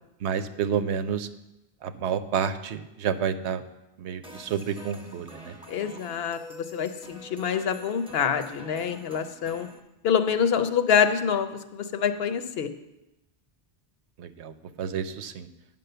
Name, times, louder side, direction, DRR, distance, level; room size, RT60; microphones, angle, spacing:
voice 1, 0.2-1.3 1.8-3.6 4.0-5.5 14.2-15.5, right 7 dB, 85° right, 11 dB, 0.9 m, -30 dB
sound 1, 4.2-9.8, equal, 5° right, 0.9 m, -46 dB
voice 2, 5.7-6.4 6.7-9.7 10.0-12.7, left 7 dB, 65° left, 9 dB, 0.9 m, -26 dB
9.8 x 5.4 x 6.7 m, 0.94 s
omnidirectional pair, 1.1 m